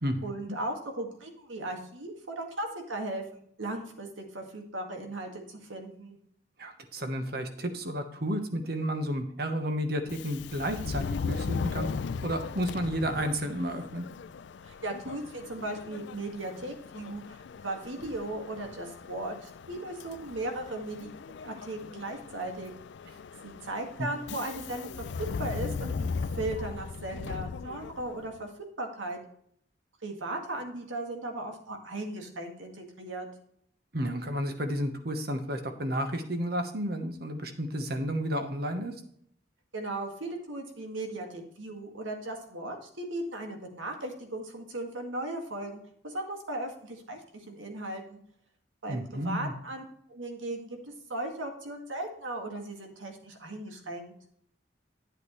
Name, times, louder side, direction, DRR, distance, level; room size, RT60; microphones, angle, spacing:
voice 1, 0.2-6.2 14.6-21.1 21.4-22.7 23.4-26.1 26.3-28.5 28.8-29.2 30.0-33.3 39.7-47.2 47.5-48.2 48.8-49.8 50.1-50.8 51.1-54.1, right 1 dB, 85° right, 3 dB, 2.0 m, -37 dB
voice 2, 6.6-11.9 12.2-14.0 24.0-24.1 33.9-38.9 48.9-49.5, equal, 55° right, 7 dB, 1.2 m, -32 dB
Subway metro underground, 10.0-28.4, left 5 dB, 65° left, 0.4 m, -38 dB
10.0 x 8.2 x 3.2 m, 0.67 s
head